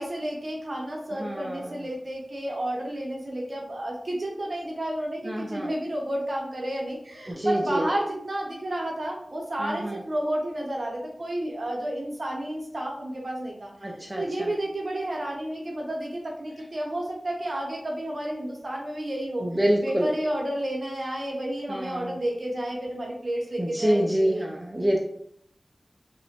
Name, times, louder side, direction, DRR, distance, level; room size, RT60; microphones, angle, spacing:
voice 1, 0.0-13.7 14.2-19.5 19.8-24.4, right 1 dB, 55° right, -1 dB, 0.6 m, -31 dB
voice 2, 1.1-1.9 5.2-5.7 7.3-7.9 9.6-10.0 13.8-14.5 19.4-20.1 21.7-22.2 23.6-25.0, equal, 20° right, -1 dB, 0.4 m, -27 dB
2.8 x 2.1 x 2.8 m, 0.68 s
wide cardioid pair, 60°, 0 cm